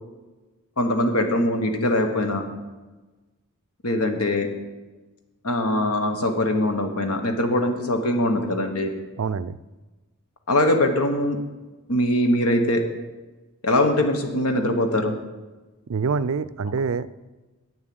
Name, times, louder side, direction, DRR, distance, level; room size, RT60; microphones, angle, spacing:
voice 1, 0.8-2.4 3.8-4.5 5.4-8.9 10.5-11.4 11.9-12.8 13.6-15.1, left 1 dB, 75° left, 5 dB, 1.4 m, -22 dB
voice 2, 9.2-9.6 15.9-17.1, right 5 dB, 65° right, 17 dB, 0.4 m, -25 dB
8.8 x 7.4 x 7.8 m, 1.2 s
head